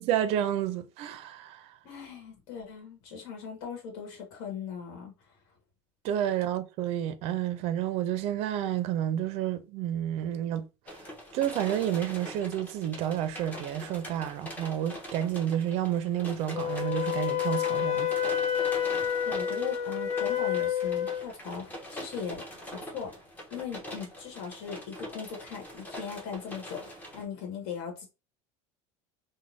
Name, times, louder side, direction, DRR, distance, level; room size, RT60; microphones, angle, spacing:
voice 1, 0.0-1.6 6.0-10.6 11.3-18.1, right 10 dB, 45° right, 0.4 m, -30 dB
voice 2, 1.8-5.1 19.2-22.4 22.8-23.1 23.5-28.1, left 7 dB, 70° left, 1.2 m, -39 dB
sound 1, 10.9-27.2, equal, 10° left, 0.7 m, -43 dB
Wind instrument woodwind instrument, 16.5-21.3, left 9 dB, 50° left, 0.5 m, -29 dB
2.6 x 2.1 x 3.1 m
cardioid pair, 150°, 14 cm